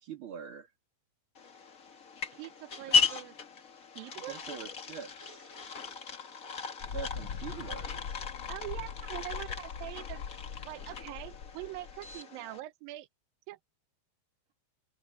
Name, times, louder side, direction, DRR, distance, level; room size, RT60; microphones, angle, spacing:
voice 1, 0.0-0.7 2.8-2.9 4.3-5.5 6.9-8.0, right 7 dB, 45° right, 2.1 m, -43 dB
sound 1, 1.3-12.6, left 5 dB, 50° left, 0.9 m, -36 dB
voice 2, 2.3-3.3 3.9-4.5 8.5-10.2 10.7-13.1 13.5-13.6, right 17 dB, 85° right, 2.4 m, -43 dB
Mechanical fan, 6.8-12.2, left 7 dB, 85° left, 1.1 m, -42 dB
open air
omnidirectional pair, 4.0 m